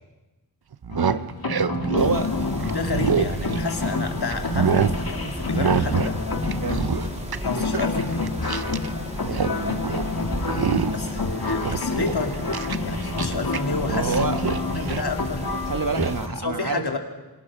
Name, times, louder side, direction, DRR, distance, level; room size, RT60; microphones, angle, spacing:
sound 1, 0.7-4.0 4.3-5.0 5.5-6.2 6.4-8.9 9.1-9.6 9.8-10.1 10.5-11.1 11.5-13.6 13.9-15.1 15.9-16.2, right 7 dB, 75° right, 0.9 m, -26 dB
sound 2, 0.9-16.3, left 3 dB, 65° left, 2.3 m, -29 dB
voice 1, 1.9-2.3 3.0-3.2 6.6-6.8 9.5-10.0 10.6-11.1 13.9-14.4 15.7-16.8, right 3 dB, 60° right, 7 dB, 2.2 m, -28 dB
Mechanisms, 2.0-16.3, right 1 dB, 15° right, 3.5 m, -35 dB
voice 2, 2.6-6.2 7.4-8.3 10.8-12.4 12.8-14.4 14.7-15.4 16.4-17.0, left 3 dB, 90° left, 4 dB, 3.0 m, -30 dB
27.0 x 26.0 x 6.3 m, 1.1 s
wide cardioid pair, 65°, 38 cm